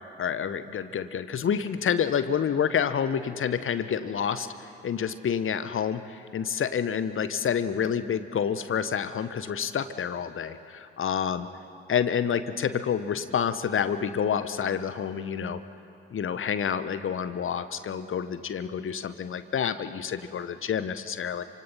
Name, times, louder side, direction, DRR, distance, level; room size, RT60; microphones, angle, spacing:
voice 1, 0.2-4.5 4.8-11.5 11.9-15.6 16.1-21.4, left 7 dB, 40° left, 12 dB, 1.3 m, -28 dB
27.5 x 25.0 x 5.7 m, 2.6 s
figure-of-eight pair, 45°, 33 cm